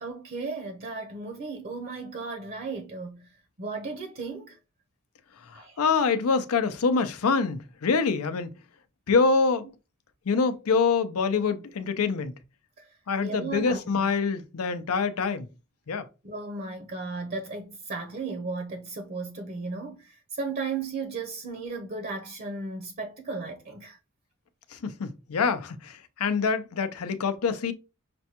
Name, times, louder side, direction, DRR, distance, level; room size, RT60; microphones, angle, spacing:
voice 1, 0.0-3.3 3.6-4.6 5.5-5.8 12.8-12.9 13.2-14.1 16.2-24.0, right 4 dB, 45° right, 0.6 m, -35 dB
voice 2, 5.5-8.5 9.1-9.7 10.3-12.3 13.1-15.5 15.9-16.1 24.7-27.7, left 5 dB, 90° left, 0.5 m, -25 dB
5.9 x 2.2 x 2.8 m
head